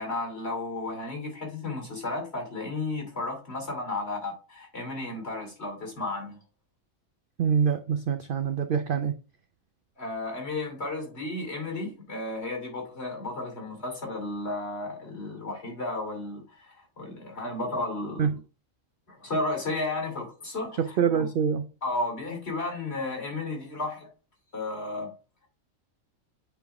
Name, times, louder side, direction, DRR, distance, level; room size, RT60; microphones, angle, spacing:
voice 1, 0.0-6.4 10.0-18.3 19.1-21.3 21.8-24.1 24.5-25.1, left 2 dB, 50° left, 2.9 m, -33 dB
voice 2, 7.4-9.2 18.2-18.4 20.8-21.6, right 7 dB, 60° right, 0.6 m, -25 dB
8.3 x 3.5 x 4.7 m
omnidirectional pair, 1.4 m